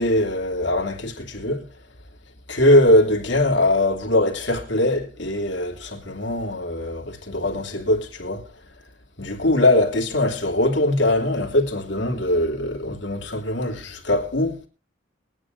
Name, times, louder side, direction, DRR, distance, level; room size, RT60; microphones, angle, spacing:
voice 1, 0.0-1.7 2.5-8.5 9.2-14.7, left 1 dB, 70° left, 3.1 m, -21 dB
22.5 x 10.0 x 2.7 m
head